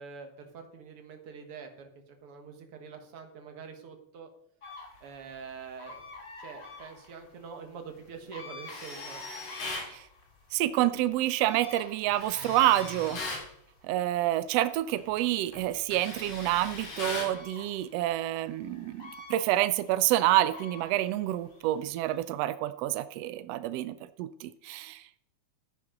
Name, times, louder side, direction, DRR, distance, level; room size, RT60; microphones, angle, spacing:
voice 1, 0.0-4.3 5.0-6.0 6.4-9.2, right 6 dB, 55° right, 4 dB, 2.2 m, -45 dB
sound 1, 4.6-22.2, left 3 dB, 30° left, 2.0 m, -50 dB
Tools, 8.6-9.9 12.1-13.5 15.0-15.2 15.5-17.4, left 3 dB, 75° left, 4.4 m, -39 dB
voice 2, 10.5-13.2 13.8-25.0, right 14 dB, 90° right, 13 dB, 1.4 m, -28 dB
13.5 x 9.6 x 3.9 m, 0.71 s
omnidirectional pair, 3.5 m